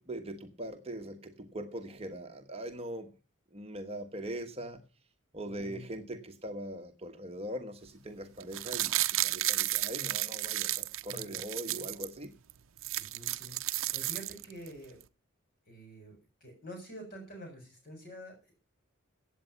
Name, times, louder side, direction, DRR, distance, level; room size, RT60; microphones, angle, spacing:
voice 1, 0.0-3.1 3.5-4.8 5.3-12.3, right 1 dB, 30° right, 5 dB, 1.3 m, -41 dB
voice 2, 5.4-6.0 11.1-11.4 12.9-15.0 15.6-18.5, equal, 45° left, 3 dB, 7.2 m, -48 dB
sound 1, 8.4-12.1 12.5-12.6 12.8-14.7 15.0-15.1, right 16 dB, 65° right, 0.6 m, -33 dB
16.0 x 8.4 x 5.8 m, 0.34 s
head